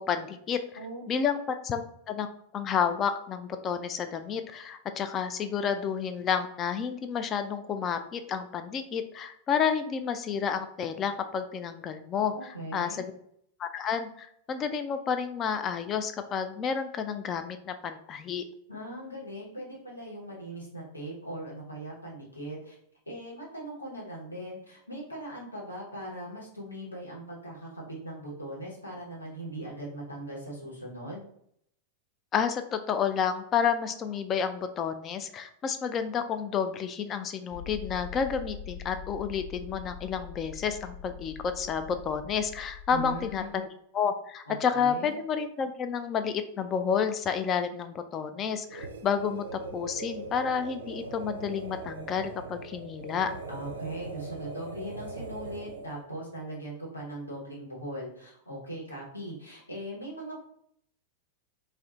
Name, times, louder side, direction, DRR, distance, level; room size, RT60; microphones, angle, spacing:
voice 1, 0.0-0.6 1.1-1.8 2.1-2.3 2.5-12.3 12.7-13.1 13.6-18.4 32.3-43.6 43.9-53.3, left 7 dB, 30° left, 8 dB, 0.3 m, -30 dB
voice 2, 12.3-13.0 18.7-22.7 23.1-31.3 42.9-43.6 44.5-45.1 53.5-60.4, right 1 dB, 85° left, -5 dB, 1.1 m, -40 dB
sound 1, 37.5-43.4, left 8 dB, 55° left, 0.7 m, -43 dB
sound 2, 48.7-56.0, right 3 dB, 70° right, 0.4 m, -40 dB
2.4 x 2.2 x 3.7 m, 0.70 s
figure-of-eight pair, 90°, 0 cm